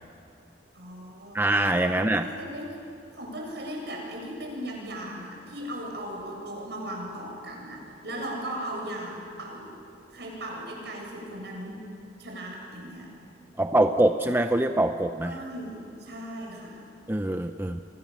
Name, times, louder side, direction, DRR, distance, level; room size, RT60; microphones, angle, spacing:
voice 1, 0.7-1.4 1.8-2.8 3.1-9.7 10.1-11.9 12.2-13.1 15.2-16.8, right 1 dB, 65° right, -1 dB, 7.6 m, -37 dB
voice 2, 1.3-2.3 13.6-15.4 17.1-17.8, right 1 dB, 10° right, 7 dB, 0.6 m, -24 dB
29.5 x 24.0 x 7.2 m, 2.4 s
head